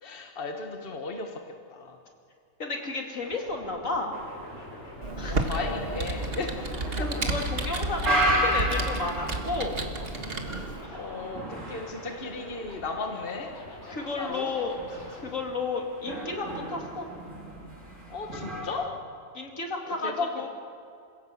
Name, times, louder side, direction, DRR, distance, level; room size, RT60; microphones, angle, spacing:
voice 1, 0.0-1.4 1.7-2.0 5.3-6.7 10.9-13.5 13.9-14.5 18.1-18.9 20.0-20.5, left 3 dB, 45° left, 3 dB, 1.7 m, -35 dB
voice 2, 2.6-4.1 5.2-5.4 7.0-9.8 10.8-11.0 13.9-14.8 15.2-17.1 19.3-20.5, left 3 dB, 80° left, 2 dB, 3.0 m, -32 dB
sound 1, 3.2-15.3, left 1 dB, 60° left, 5.4 m, -46 dB
sound 2, 4.1-18.7, equal, 80° right, 4.9 m, -34 dB
Computer keyboard, 5.0-10.8, right 2 dB, 50° right, 1.8 m, -31 dB
27.5 x 16.5 x 7.7 m, 2.4 s
omnidirectional pair, 1.3 m